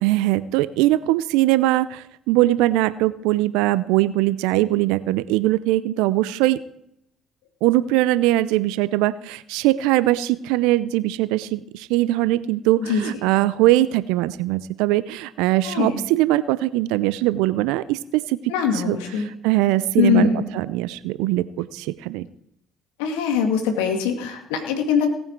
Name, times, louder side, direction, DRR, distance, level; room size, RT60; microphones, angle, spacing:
voice 1, 0.0-6.6 7.6-19.0 19.4-22.3, right 16 dB, 75° right, 16 dB, 0.5 m, -21 dB
voice 2, 15.6-16.0 18.5-19.3 20.0-20.4 23.0-25.1, left 6 dB, 75° left, 4 dB, 2.1 m, -22 dB
18.0 x 8.8 x 4.5 m, 0.79 s
hypercardioid pair, 55°, 0 cm